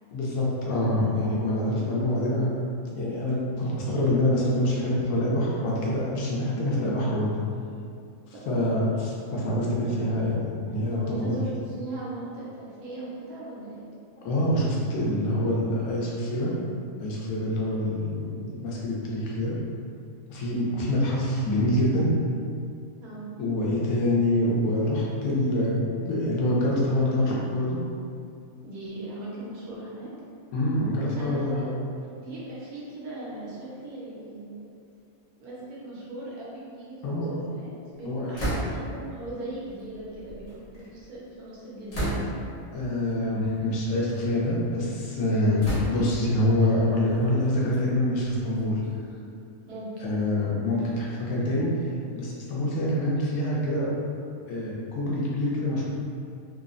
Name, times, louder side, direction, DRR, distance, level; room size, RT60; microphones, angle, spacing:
voice 1, 0.1-2.5 2.9-7.3 8.5-11.4 14.2-16.5 17.0-19.5 20.3-22.1 23.4-27.8 30.5-31.7 37.0-37.3 38.0-38.4 42.7-48.8 50.0-51.7 52.1-53.9 54.5-55.8, left 1 dB, 80° left, -5 dB, 1.1 m, -26 dB
voice 2, 6.6-6.9 8.3-8.4 10.9-13.9 23.0-23.2 28.6-30.1 31.2-31.6 32.2-34.7 35.4-42.2 49.7-49.9, right 2 dB, 85° right, -7 dB, 1.2 m, -39 dB
sound 1, 38.3-39.0 39.9-41.0 41.9-42.6 43.4-43.6 44.1-44.8 45.6-46.3 47.1-49.0, right 1 dB, 50° left, 0.4 m, -33 dB
3.1 x 2.0 x 2.4 m, 2.4 s
omnidirectional pair, 1.5 m